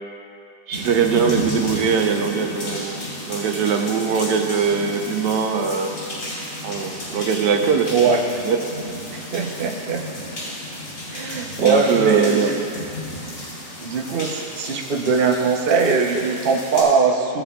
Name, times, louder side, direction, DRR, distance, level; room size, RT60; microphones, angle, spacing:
sound 1, 0.7-16.8, left 1 dB, 70° left, 3.3 m, -33 dB
voice 1, 0.7-5.9 6.6-8.0 8.4-8.6 11.6-12.8, right 6 dB, 80° right, 3 dB, 1.4 m, -21 dB
voice 2, 7.9-8.2 9.1-10.0 11.1-12.6 13.8-17.4, right 4 dB, 50° right, 2 dB, 0.7 m, -20 dB
16.0 x 7.9 x 2.3 m, 2.5 s
omnidirectional pair, 1.8 m